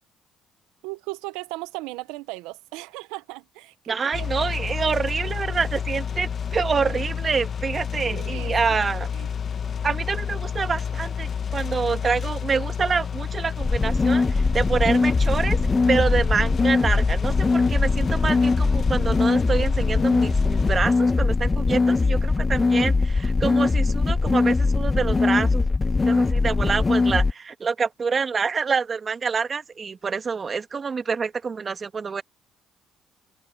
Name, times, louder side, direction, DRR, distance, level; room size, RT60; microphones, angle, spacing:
voice 1, 0.8-4.3 8.0-8.5 9.1-9.3, right 22 dB, 80° right, 1.2 m, -37 dB
voice 2, 3.9-9.1 9.8-15.6 15.9-25.6 26.1-32.2, right 5 dB, 40° right, 1.8 m, -26 dB
sound 1, 4.1-20.8, left 7 dB, 50° left, 1.6 m, -30 dB
sound 2, 13.6-27.3, left 3 dB, 30° left, 1.1 m, -21 dB
hypercardioid pair, 55°, 0 cm